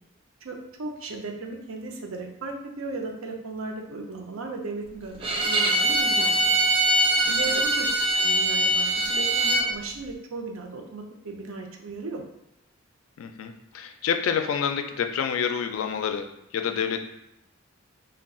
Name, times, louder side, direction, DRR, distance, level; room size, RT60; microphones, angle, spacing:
voice 1, 0.4-6.5 7.3-12.2, right 3 dB, 90° right, 2 dB, 0.5 m, -36 dB
Bowed string instrument, 5.2-9.7, right 1 dB, 25° right, 0.3 m, -22 dB
voice 2, 7.2-7.6 13.2-17.0, left 7 dB, 85° left, 7 dB, 0.3 m, -28 dB
2.3 x 2.2 x 3.6 m, 0.83 s
head